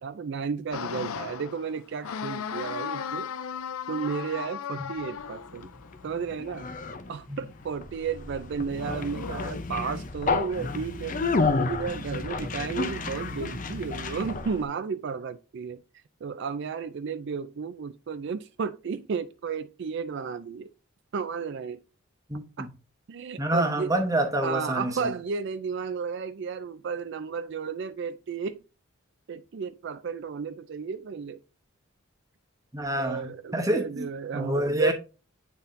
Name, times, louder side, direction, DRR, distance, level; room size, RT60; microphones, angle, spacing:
voice 1, 0.0-3.3 3.9-5.7 6.0-6.7 7.1-11.2 11.6-20.7 21.1-21.8 22.6-22.7 23.1-23.9 24.4-28.6 29.3-31.4 32.9-34.9, right 6 dB, 55° right, 0.4 m, -33 dB
sound 1, 0.7-6.2 8.7-9.5, left 7 dB, 85° left, 0.5 m, -36 dB
Conversation, 5.2-14.6, left 3 dB, 40° left, 0.6 m, -31 dB
voice 2, 22.3-22.7 23.4-25.1 32.7-34.1 34.3-34.9, right 1 dB, 15° right, 1.0 m, -27 dB
9.1 x 4.1 x 2.6 m
head